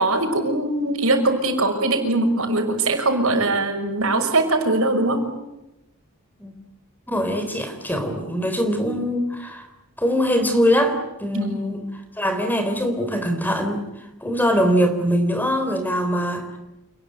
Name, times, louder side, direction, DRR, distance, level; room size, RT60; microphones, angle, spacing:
voice 1, 0.0-5.2 11.3-11.6, right 2 dB, 65° right, 5 dB, 6.1 m, -21 dB
voice 2, 7.1-9.7 10.0-11.9 12.1-13.9 14.2-16.6, equal, 10° left, 7 dB, 3.5 m, -22 dB
28.5 x 20.5 x 9.4 m, 0.93 s
head